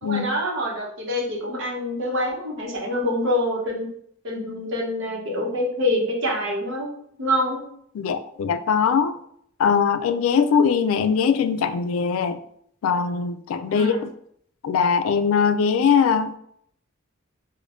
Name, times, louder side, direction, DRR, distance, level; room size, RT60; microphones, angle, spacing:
voice 1, 0.0-3.9 4.2-6.9 7.2-7.6 13.7-14.0, left 1 dB, 60° right, -1 dB, 0.9 m, -26 dB
voice 2, 7.9-9.2 9.6-12.4 12.8-14.1 14.6-16.4, left 6 dB, 80° left, 11 dB, 0.3 m, -21 dB
5.1 x 2.1 x 2.5 m, 0.68 s
head